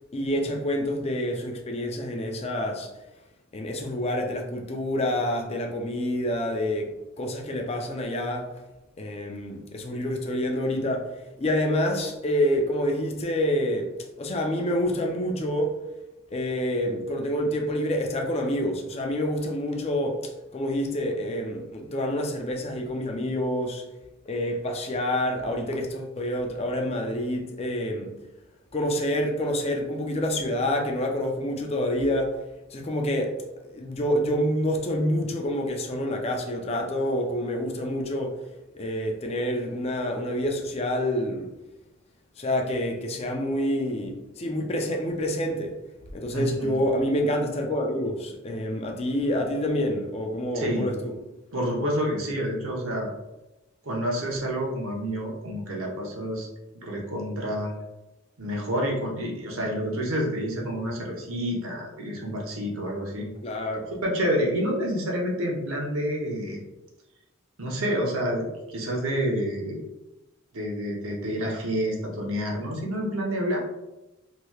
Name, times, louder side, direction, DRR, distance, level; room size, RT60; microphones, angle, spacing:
voice 1, 0.1-2.9 3.5-8.5 9.0-15.8 16.3-23.8 24.3-28.1 28.7-32.4 32.7-38.4 38.7-41.5 42.4-45.8 46.1-51.1 63.4-63.9, equal, 30° left, 0.4 m, -27 dB
voice 2, 46.3-46.8 50.5-50.9 51.5-53.1 53.8-56.5 56.8-57.7 58.4-63.3 63.9-66.6 67.6-69.8 70.5-73.6, equal, 85° right, 0.9 m, -28 dB
3.2 x 2.9 x 2.3 m
head